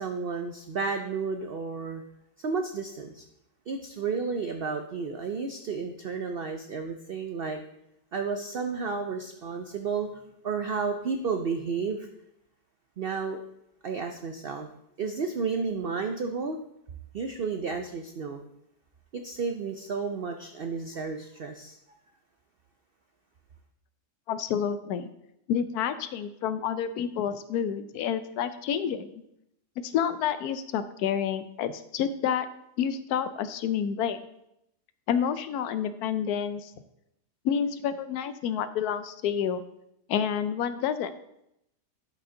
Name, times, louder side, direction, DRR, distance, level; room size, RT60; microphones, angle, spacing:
voice 1, 0.0-2.0 2.4-3.2 3.7-7.6 8.1-12.1 13.0-13.4 13.8-14.7 15.0-16.6 17.1-18.4 19.1-21.8, right 5 dB, 70° right, 6 dB, 0.5 m, -32 dB
voice 2, 24.3-25.1 25.5-29.1 29.8-32.5 32.8-34.2 35.1-36.7 37.4-39.6 40.1-41.1, left 8 dB, 75° left, 12 dB, 1.1 m, -29 dB
11.5 x 5.3 x 3.8 m, 0.81 s
omnidirectional pair, 1.7 m